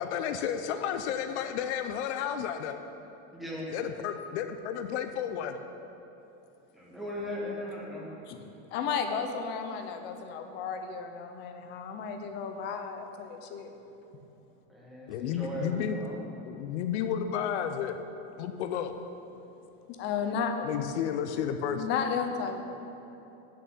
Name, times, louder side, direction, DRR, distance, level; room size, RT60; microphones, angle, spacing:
voice 1, 0.0-2.8 3.7-5.6 8.0-8.1 8.4-8.5 9.8-10.2 15.1-16.0 16.4-18.0 18.4-18.9 20.6-21.9, left 8 dB, 65° left, 8 dB, 0.7 m, -32 dB
voice 2, 3.3-3.7 6.7-8.1 14.7-16.2, left 1 dB, ahead, -5 dB, 1.6 m, -38 dB
voice 3, 8.7-13.7 19.9-20.5 21.7-22.6, left 6 dB, 30° left, 6 dB, 0.7 m, -33 dB
8.1 x 7.5 x 8.6 m, 3.0 s
supercardioid pair, 170°, 37 cm